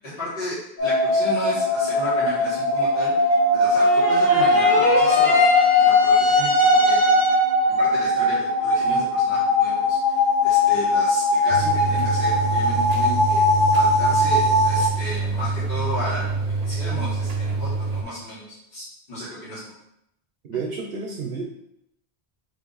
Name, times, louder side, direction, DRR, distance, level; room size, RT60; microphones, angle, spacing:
voice 1, 0.0-3.2 3.5-5.4 5.8-7.2 7.8-10.0 10.4-13.5 13.7-16.3 16.6-19.6, equal, 65° left, -12 dB, 1.7 m, -34 dB
sound 1, 0.8-14.9, left 2 dB, 50° left, 1.0 m, -20 dB
sound 2, 3.8-7.6, left 1 dB, 25° right, 1.0 m, -23 dB
sound 3, 11.5-18.0, right 4 dB, 50° right, 0.5 m, -26 dB
voice 2, 20.4-21.4, right 4 dB, 70° right, 0 dB, 0.8 m, -30 dB
3.4 x 2.6 x 3.9 m, 0.80 s
omnidirectional pair, 1.0 m